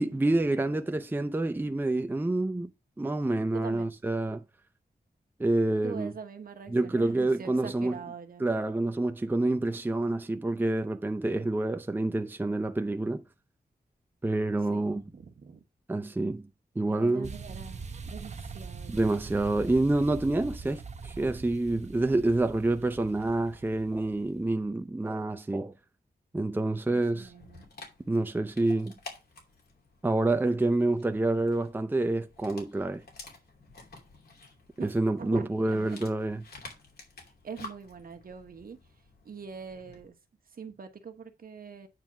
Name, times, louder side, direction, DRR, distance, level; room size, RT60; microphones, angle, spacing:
voice 1, 0.0-2.7 3.0-4.4 5.4-6.1 6.7-8.0 8.4-13.2 14.2-15.0 15.9-16.5 16.8-17.3 18.9-25.7 26.3-27.3 28.1-28.9 30.0-33.0 34.8-36.4, right 2 dB, 10° right, 0.5 m, -27 dB
voice 2, 3.5-3.9 5.8-8.5 14.5-15.6 16.9-19.1 26.9-27.6 34.8-36.0 37.4-38.8 39.2-40.1 40.5-41.9, right 6 dB, 65° right, 1.2 m, -43 dB
sound 1, 17.2-24.5, right 4 dB, 45° right, 0.7 m, -43 dB
Dog, 27.2-40.1, left 3 dB, 80° left, 2.7 m, -51 dB
9.0 x 3.5 x 6.1 m
wide cardioid pair, 145°, 16 cm